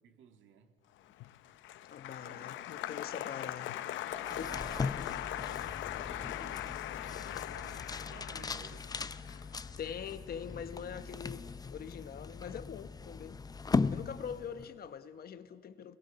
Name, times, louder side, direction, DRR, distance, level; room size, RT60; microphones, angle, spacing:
voice 1, 0.0-0.7 2.2-2.7 4.1-8.9, right 7 dB, 70° right, 2.0 m, -55 dB
Applause, 1.1-11.5 11.7-12.3, left 13 dB, 70° left, 0.7 m, -41 dB
voice 2, 1.9-3.7 4.4-4.5 9.8-13.4 13.9-16.0, left 8 dB, 50° left, 1.2 m, -43 dB
sound 1, 4.2-14.8, left 4 dB, 20° left, 0.6 m, -38 dB
28.0 x 22.0 x 6.9 m
cardioid pair, 120°, 20 cm